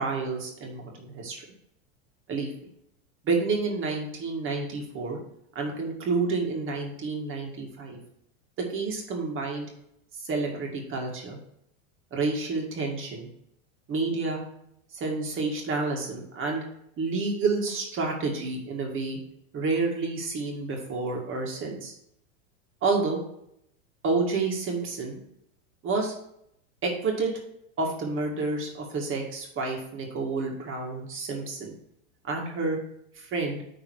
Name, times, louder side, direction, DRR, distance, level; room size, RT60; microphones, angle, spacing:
voice 1, 0.0-1.4 2.3-2.5 3.2-5.2 5.6-8.0 8.7-9.7 10.2-11.4 12.1-13.3 13.9-14.4 14.9-16.6 17.0-19.2 19.5-21.9 22.8-23.2 24.0-25.2 25.8-26.2 26.8-27.3 27.8-31.7 32.2-32.8 33.2-33.6, right 3 dB, 30° right, 0 dB, 2.1 m, -29 dB
9.9 x 3.8 x 4.8 m, 0.76 s
supercardioid pair, 125°, 39 cm